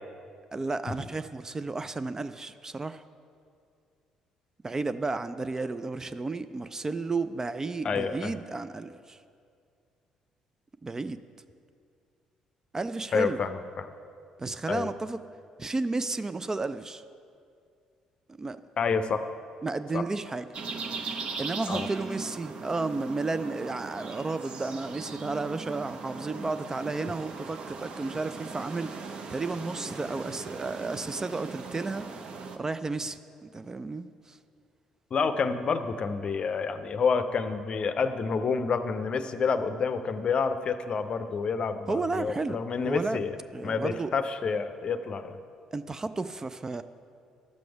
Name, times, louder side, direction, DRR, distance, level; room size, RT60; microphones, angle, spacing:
voice 1, 0.5-3.0 4.6-9.2 10.8-11.2 12.7-13.4 14.4-15.2 15.6-17.0 18.4-18.6 19.6-20.5 21.0-29.0 29.3-32.1 32.6-34.4 41.9-43.2 43.5-44.1 45.7-46.8, right 3 dB, 20° right, 12 dB, 0.3 m, -32 dB
voice 2, 7.8-8.3 13.1-13.9 14.7-14.9 18.8-19.2 19.9-20.0 21.7-21.9 35.1-43.3 43.6-45.4, left 5 dB, 40° left, 10 dB, 0.6 m, -28 dB
sound 1, 20.5-32.6, right 4 dB, 45° right, 0.8 m, -39 dB
11.5 x 7.7 x 4.8 m, 2.3 s
figure-of-eight pair, 45°, 2 cm